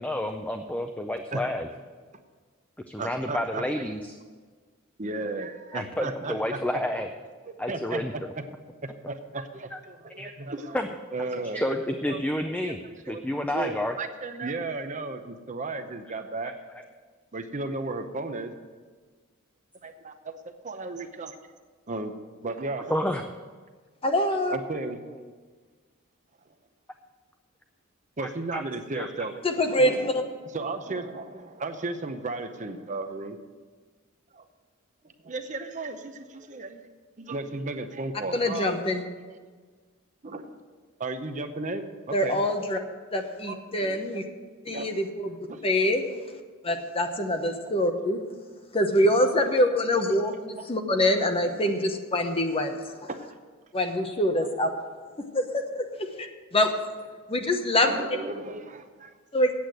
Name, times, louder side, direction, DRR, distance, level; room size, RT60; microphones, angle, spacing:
voice 1, 0.0-1.7 2.9-4.0 5.7-7.1 7.6-8.1 9.7-9.8 10.2-10.3 10.7-10.9 11.5-12.8 13.1-13.9 16.1-16.2 16.7-16.8 22.9-23.2 28.2-28.6 28.9-29.1, left 1 dB, 5° left, 5 dB, 0.4 m, -29 dB
voice 2, 3.0-3.9 5.0-6.6 7.4-8.4 8.8-10.8 11.1-11.8 12.1-12.8 13.1-16.5 17.3-18.5 19.8-20.4 20.6-21.4 21.9-22.1 22.4-23.1 24.1-24.2 24.5-25.0 28.2-29.3 30.5-33.4 34.3-34.5 35.2-36.8 37.2-38.9 40.2-40.6 41.0-42.4 43.5-43.6 44.7-44.9 45.5-45.6 49.4-49.5 50.6-50.7 53.1-53.3 57.8-59.1, right 3 dB, 35° right, 7 dB, 0.7 m, -34 dB
voice 3, 24.0-24.6 29.4-30.2 38.3-39.1 42.1-42.8 43.1-44.2 44.6-45.4 45.6-46.0 46.6-48.2 48.7-53.1 53.7-54.7 55.3-55.8 56.2-56.3 56.5-56.7 57.3-58.0 59.3-59.5, left 1 dB, 25° left, 5 dB, 1.0 m, -25 dB
8.5 x 8.0 x 9.0 m, 1.5 s
head